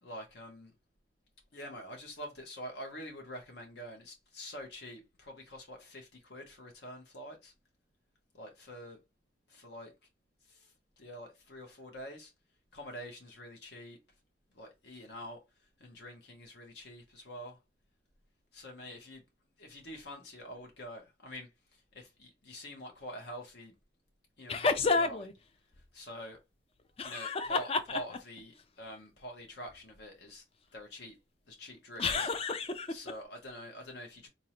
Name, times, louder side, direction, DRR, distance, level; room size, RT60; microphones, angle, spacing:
voice 1, 0.0-0.7 1.5-7.5 8.3-9.0 9.5-9.9 10.5-12.3 12.7-14.0 14.5-17.6 18.5-19.2 19.6-23.7 24.4-25.3 25.9-26.4 27.0-30.4 30.7-31.2 31.5-32.3 32.9-34.3, equal, 65° left, 0.8 m, -46 dB
sound 1, 24.5-25.3 27.0-28.4 32.0-33.1, left 4 dB, 35° left, 0.4 m, -30 dB
4.1 x 2.6 x 2.9 m
head